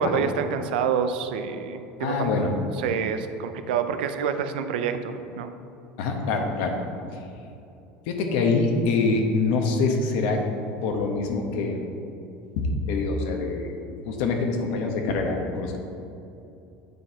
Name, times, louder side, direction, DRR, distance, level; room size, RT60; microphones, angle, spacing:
voice 1, 0.0-2.5 2.7-5.5, right 7 dB, 90° right, 9 dB, 0.5 m, -27 dB
voice 2, 2.0-2.5 6.0-6.7 8.1-10.4 10.8-11.8 12.6-13.7 14.0-15.8, left 3 dB, 75° left, 3 dB, 1.0 m, -25 dB
8.3 x 4.1 x 4.6 m, 2.6 s
supercardioid pair, 105°, 5 cm